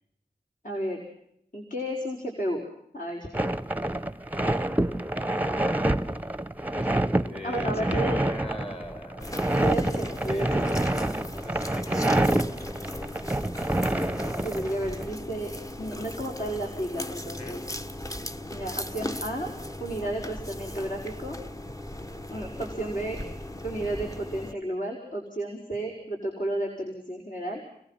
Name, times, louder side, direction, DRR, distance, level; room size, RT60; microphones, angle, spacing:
voice 1, 0.6-1.0 1.5-2.6 2.9-3.3 7.4-8.2 9.6-10.7 14.4-15.5 15.8-17.6 18.5-19.5 19.8-21.4 22.3-23.2 23.6-27.6, right 1 dB, 55° left, -1 dB, 5.3 m, -32 dB
sound 1, 3.3-15.1, right 1 dB, 10° right, 1.0 m, -27 dB
voice 2, 7.2-9.5 10.3-10.8 11.4-12.6 12.9-13.3 17.4-17.6, left 2 dB, 35° left, 6 dB, 5.1 m, -40 dB
sound 2, 9.2-24.5, left 1 dB, 20° left, 1.2 m, -38 dB
29.5 x 22.5 x 5.8 m, 0.72 s
wide cardioid pair, 75°, 17 cm